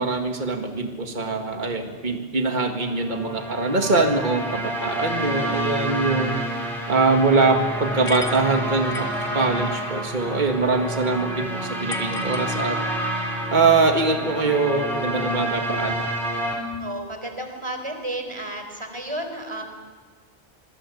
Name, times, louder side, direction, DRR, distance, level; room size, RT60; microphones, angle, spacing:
voice 1, 0.0-6.5 6.9-9.1 9.3-12.8 13.5-16.1, right 3 dB, 45° right, 4 dB, 2.2 m, -23 dB
sound 1, 3.0-16.5, right 1 dB, ahead, 6.2 m, -29 dB
sound 2, 8.0-9.3 11.9-13.1, left 3 dB, 65° left, 1.8 m, -35 dB
voice 2, 9.0-9.5 16.4-19.6, right 1 dB, 25° right, 5 dB, 4.4 m, -33 dB
27.0 x 23.5 x 8.5 m, 1.5 s
omnidirectional pair, 1.1 m